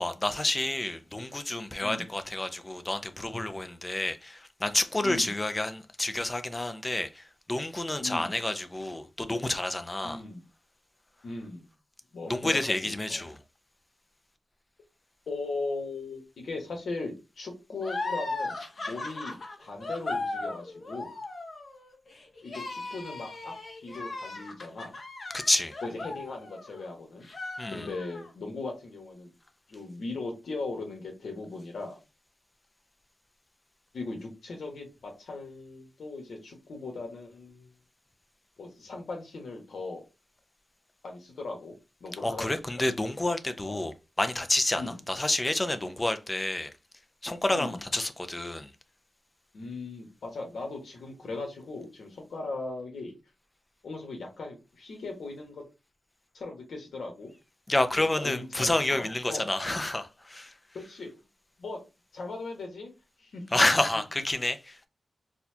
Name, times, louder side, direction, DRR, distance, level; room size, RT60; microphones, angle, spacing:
voice 1, 0.0-10.2 12.3-13.4 25.3-25.8 27.6-27.9 42.2-46.7 47.2-48.7 57.7-60.6 63.5-64.9, left 1 dB, 20° left, 0.5 m, -29 dB
voice 2, 8.0-8.3 10.0-10.4 11.2-11.7 12.1-13.2 15.3-21.2 22.4-25.0 25.8-27.3 27.7-29.3 29.7-32.0 33.9-37.7 38.6-40.0 41.0-41.7 42.0-42.8 43.6-43.8 44.7-45.0 47.5-47.8 49.5-53.1 53.8-55.6 56.3-57.3 58.2-59.5 60.7-61.1 61.6-61.8 62.1-62.9 63.2-63.4, left 3 dB, 85° left, 1.3 m, -38 dB
sound 1, 17.8-26.9 27.2-28.3, left 2 dB, 50° left, 0.8 m, -37 dB
4.1 x 2.3 x 2.8 m
wide cardioid pair, 110°, 0 cm